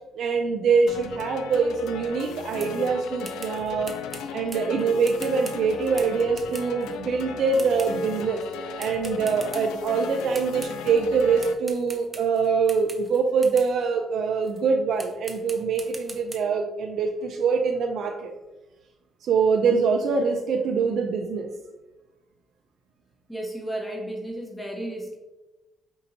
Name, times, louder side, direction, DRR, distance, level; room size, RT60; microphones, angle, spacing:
voice 1, 0.2-4.0 4.3-8.4 8.8-18.3 19.2-21.5, right 5 dB, 70° right, 3 dB, 0.3 m, -24 dB
sound 1, 0.9-11.5, left 5 dB, 90° left, 0.3 m, -36 dB
sound 2, 2.6-2.8 3.2-7.0 7.6-8.2 8.8-10.1 10.3-11.0 11.4-13.8 14.4-14.6 15.0-16.4, right 2 dB, 20° right, 0.6 m, -43 dB
voice 2, 23.3-25.2, right 1 dB, 10° left, -1 dB, 0.8 m, -33 dB
5.2 x 2.8 x 2.7 m, 1.1 s
cardioid pair, 90°, 0 cm